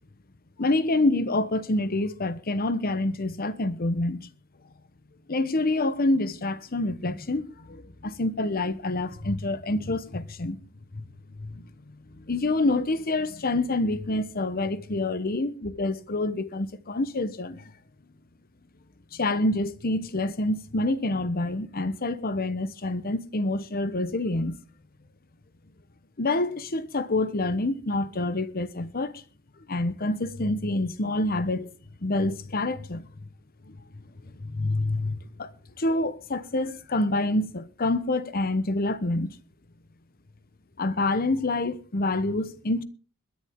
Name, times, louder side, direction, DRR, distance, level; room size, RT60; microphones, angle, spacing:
voice 1, 0.6-4.3 5.3-10.6 10.9-11.0 11.4-17.6 19.1-24.6 26.2-29.2 29.7-31.7 32.0-33.1 33.7-33.8 34.2-35.5 35.8-39.4 40.8-42.8, left 2 dB, 45° left, 1.0 m, -27 dB
21.5 x 10.0 x 3.7 m
head